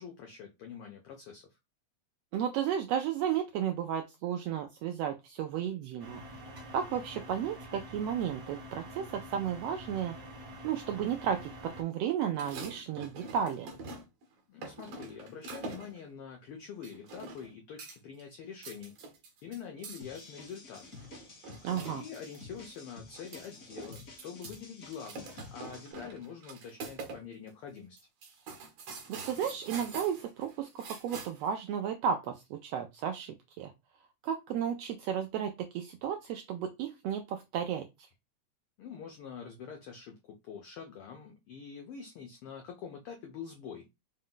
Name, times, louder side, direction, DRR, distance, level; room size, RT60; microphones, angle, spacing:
voice 1, 0.0-1.4 14.5-18.9 19.4-20.8 21.9-28.0 38.8-40.1 40.4-43.8, left 7 dB, 85° left, 2 dB, 1.2 m, -45 dB
voice 2, 2.3-6.2 6.7-10.2 10.6-13.7 21.6-22.0 29.1-33.7 34.2-37.8, right 8 dB, 90° right, 5 dB, 1.4 m, -33 dB
sound 1, 6.0-11.8, equal, 50° right, 1.1 m, -47 dB
sound 2, 12.3-14.2 14.6-16.0 16.8-17.5 17.8-18.2 18.5-22.4 22.7-22.8 23.1-24.6 24.9-27.2 27.5-27.6 28.0-31.5, right 3 dB, 65° right, 1.7 m, -45 dB
sound 3, 20.0-25.9, left 4 dB, 60° left, 0.9 m, -51 dB
4.7 x 2.1 x 3.7 m, 0.23 s
omnidirectional pair, 3.3 m